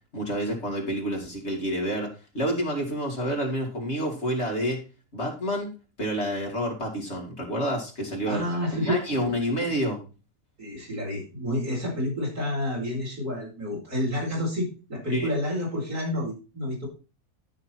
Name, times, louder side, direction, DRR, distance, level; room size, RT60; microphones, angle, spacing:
voice 1, 0.1-4.8 5.1-5.7 6.0-8.4 8.7-10.0 15.1-15.3, equal, 45° left, 1 dB, 3.1 m, -28 dB
voice 2, 8.3-9.0 10.6-16.9, left 1 dB, 75° right, -5 dB, 5.4 m, -29 dB
12.0 x 6.7 x 4.5 m, 0.32 s
omnidirectional pair, 1.6 m